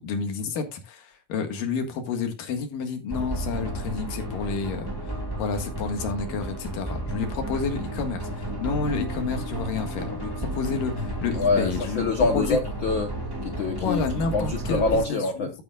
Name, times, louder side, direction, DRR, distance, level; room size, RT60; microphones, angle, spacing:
voice 1, 0.0-12.0 12.3-12.6 13.8-15.5, left 5 dB, 90° left, 3.4 m, -30 dB
sound 1, 3.1-15.1, right 1 dB, 10° right, 1.8 m, -32 dB
voice 2, 11.3-13.1 13.4-15.5, left 3 dB, 65° left, 1.2 m, -25 dB
12.5 x 9.5 x 2.4 m
omnidirectional pair, 3.7 m